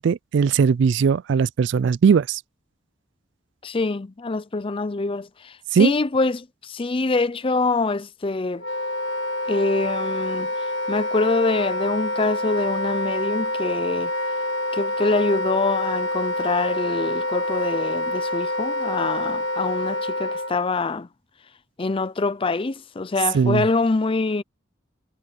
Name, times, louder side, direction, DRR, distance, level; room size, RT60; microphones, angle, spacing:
voice 1, 0.0-2.4 5.7-5.9 23.3-23.7, right 6 dB, 60° right, 0.3 m, -19 dB
voice 2, 3.6-5.5 5.8-8.6 9.5-10.5 10.9-14.1 14.7-21.1 21.8-24.4, left 3 dB, 25° left, 0.5 m, -24 dB
Wind instrument woodwind instrument, 8.6-20.5, left 1 dB, 70° left, 1.6 m, -27 dB
head